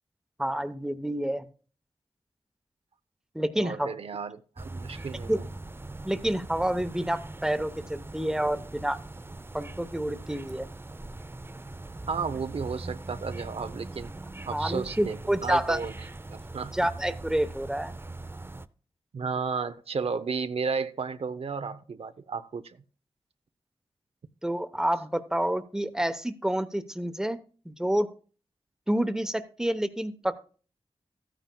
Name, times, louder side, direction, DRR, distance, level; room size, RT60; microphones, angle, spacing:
voice 1, 0.4-1.4 3.3-3.9 5.3-5.4 6.0-9.0 9.5-10.6 14.5-15.8 16.7-17.9 24.4-27.4 27.6-28.1 28.9-30.4, right 1 dB, 5° right, 0.9 m, -28 dB
voice 2, 3.6-5.4 12.1-14.1 14.5-15.9 16.3-16.8 19.1-22.8, right 5 dB, 75° right, 0.6 m, -33 dB
sound 1, 4.6-18.7, right 2 dB, 20° right, 0.5 m, -41 dB
14.0 x 9.2 x 2.2 m
wide cardioid pair, 75°, 10 cm